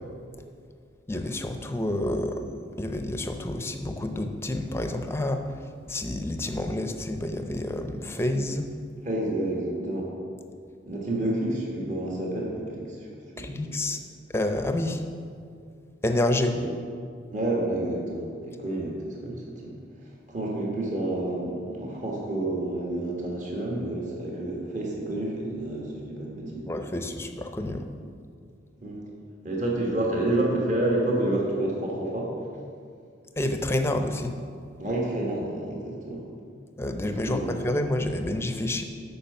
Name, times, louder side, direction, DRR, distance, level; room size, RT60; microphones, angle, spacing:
voice 1, 1.1-2.4 2.8-8.7 13.4-14.0 14.3-15.0 16.0-16.6 26.7-27.9 33.4-34.4 36.8-38.8, left 1 dB, 15° left, 6 dB, 0.5 m, -28 dB
voice 2, 9.0-10.1 10.9-13.1 13.3-13.7 16.5-16.7 17.3-19.7 20.3-26.7 28.8-29.0 29.4-32.3 34.8-36.2 37.3-37.6, right 1 dB, 40° right, -2 dB, 1.5 m, -29 dB
8.6 x 5.6 x 6.8 m, 2.3 s
head